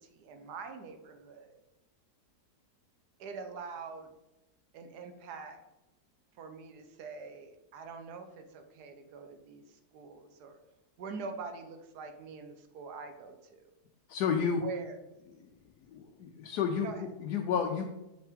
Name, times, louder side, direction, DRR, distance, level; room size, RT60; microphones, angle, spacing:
voice 1, 0.0-1.6 3.2-4.1 4.7-5.6 6.4-10.6 11.0-13.7 14.6-15.0 16.8-17.1, right 5 dB, 80° right, 6 dB, 1.4 m, -44 dB
voice 2, 14.1-14.6 15.4-15.5 15.9-17.8, left 6 dB, 85° left, 3 dB, 1.2 m, -31 dB
5.8 x 5.8 x 3.5 m, 0.96 s
omnidirectional pair, 1.7 m